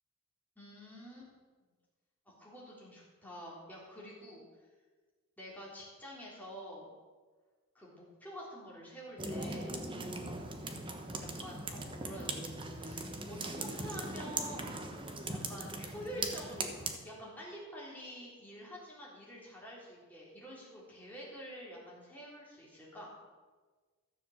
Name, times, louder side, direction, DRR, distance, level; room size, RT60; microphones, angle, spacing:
voice 1, 0.6-1.3 2.3-4.4 5.4-6.9 7.7-9.8 11.2-12.5 12.8-14.8 15.3-23.1, equal, 5° left, -6 dB, 3.7 m, -48 dB
sound 1, 9.2-17.0, right 2 dB, 25° right, 1.1 m, -40 dB
13.5 x 7.2 x 7.3 m, 1.4 s
head